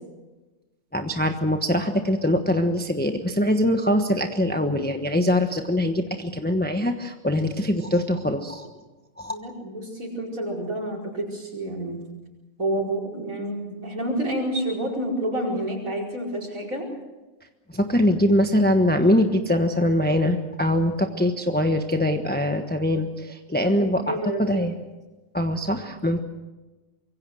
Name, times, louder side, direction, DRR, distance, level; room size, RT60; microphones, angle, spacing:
voice 1, 0.9-8.7 9.2-9.4 17.7-24.8 25.3-26.2, left 1 dB, 5° left, 5 dB, 1.1 m, -23 dB
voice 2, 9.3-12.0 12.6-16.9 24.0-24.7, right 1 dB, 75° right, 1 dB, 5.4 m, -29 dB
25.0 x 23.0 x 6.3 m, 1.1 s
omnidirectional pair, 1.4 m